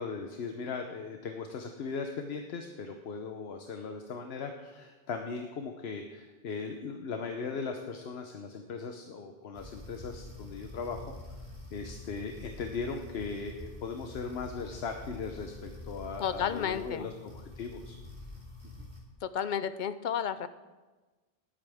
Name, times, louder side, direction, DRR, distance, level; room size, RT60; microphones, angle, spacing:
voice 1, 0.0-11.0 11.7-18.0 18.8-18.9, left 5 dB, 80° left, 4 dB, 1.0 m, -38 dB
sound 1, 9.5-19.0, left 2 dB, 30° right, 2.2 m, -46 dB
voice 2, 16.2-17.1 19.2-20.5, left 8 dB, 55° left, 13 dB, 0.6 m, -32 dB
18.5 x 8.7 x 3.5 m, 1.3 s
omnidirectional pair, 1.1 m